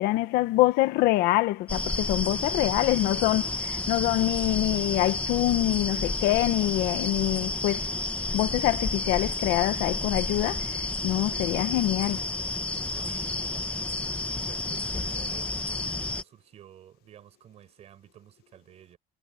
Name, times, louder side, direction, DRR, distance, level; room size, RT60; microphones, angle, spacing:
voice 1, 0.0-3.4 3.7-7.8 8.3-12.2, left 17 dB, 75° left, 1.2 m, -25 dB
sound 1, 1.7-16.2, left 2 dB, 10° left, 1.3 m, -31 dB
voice 2, 2.3-3.3 12.9-19.0, right 10 dB, 40° right, 7.6 m, -51 dB
cardioid pair, 175°, 16 cm